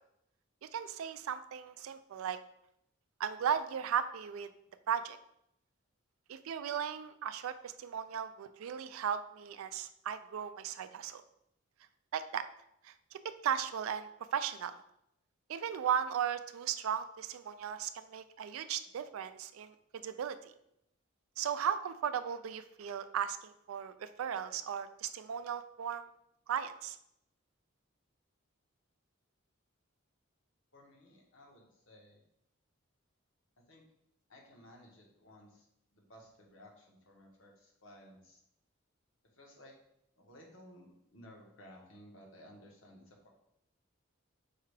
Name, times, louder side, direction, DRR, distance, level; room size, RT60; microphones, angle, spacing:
voice 1, 0.6-2.4 3.2-4.5 4.9-5.2 6.3-11.2 12.1-12.4 12.8-14.7 15.5-19.7 20.0-20.4 21.4-26.1 26.5-27.0, right 8 dB, 85° right, 11 dB, 0.3 m, -36 dB
voice 2, 30.7-32.2 33.6-33.8 34.3-38.4 39.3-39.7 40.2-43.3, equal, 70° left, -1 dB, 1.1 m, -57 dB
4.7 x 2.3 x 4.7 m, 0.76 s
head